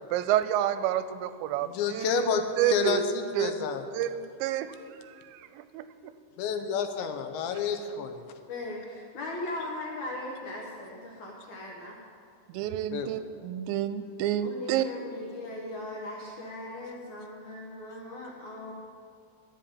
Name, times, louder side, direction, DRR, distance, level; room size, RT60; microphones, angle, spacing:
voice 1, 0.1-2.3 2.6-3.0 3.4-3.5 3.9-4.7 5.0-5.8 12.5-14.9, right 12 dB, 85° right, 12 dB, 2.7 m, -29 dB
voice 2, 1.6-3.8 6.4-8.2 12.9-13.1, left 6 dB, 80° left, 7 dB, 3.1 m, -30 dB
voice 3, 8.5-12.0 14.4-18.7, left 2 dB, 65° left, -2 dB, 2.0 m, -39 dB
12.0 x 7.9 x 8.5 m, 2.3 s
omnidirectional pair, 5.2 m